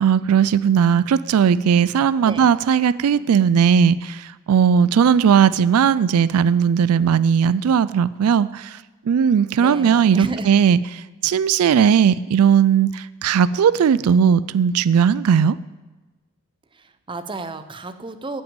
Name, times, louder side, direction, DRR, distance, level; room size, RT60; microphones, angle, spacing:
voice 1, 0.0-8.8 9.1-15.6, right 7 dB, 80° right, 18 dB, 0.3 m, -17 dB
voice 2, 9.6-10.6 16.7-18.4, right 3 dB, 20° right, 10 dB, 0.7 m, -32 dB
14.0 x 6.0 x 8.8 m, 1.2 s
head